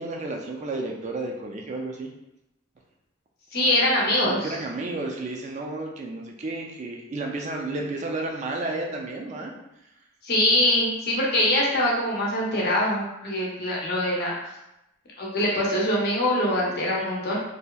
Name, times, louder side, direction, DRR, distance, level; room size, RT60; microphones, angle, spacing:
voice 1, 0.0-2.1 4.2-9.5, right 2 dB, 35° right, 1 dB, 0.3 m, -32 dB
voice 2, 3.5-4.5 10.2-14.3 15.2-17.4, left 1 dB, 50° left, -4 dB, 0.6 m, -23 dB
2.6 x 2.1 x 2.2 m, 0.88 s
head